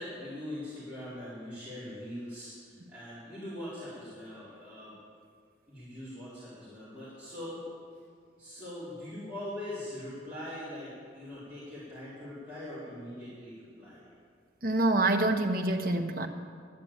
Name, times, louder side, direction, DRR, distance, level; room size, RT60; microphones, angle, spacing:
voice 1, 0.0-4.9 5.7-7.6 8.4-14.0, left 1 dB, 10° right, -14 dB, 4.5 m, -42 dB
voice 2, 14.6-16.3, right 2 dB, 50° right, 5 dB, 1.0 m, -26 dB
11.5 x 9.6 x 8.8 m, 2.1 s
head